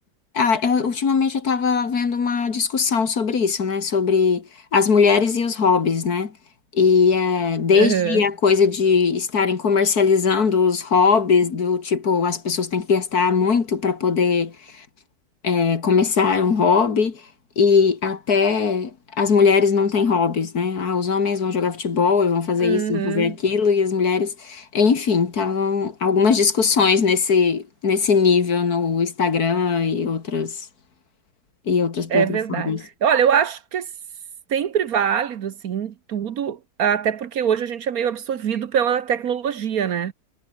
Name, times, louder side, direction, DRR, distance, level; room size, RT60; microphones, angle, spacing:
voice 1, 0.3-6.3 6.7-14.5 15.4-17.2 17.6-30.7 31.7-32.8, left 5 dB, 60° left, 2.5 m, -20 dB
voice 2, 7.7-8.2 22.6-23.3 32.1-33.9 34.5-40.1, right 8 dB, 60° right, 1.4 m, -23 dB
omnidirectional pair, 1.8 m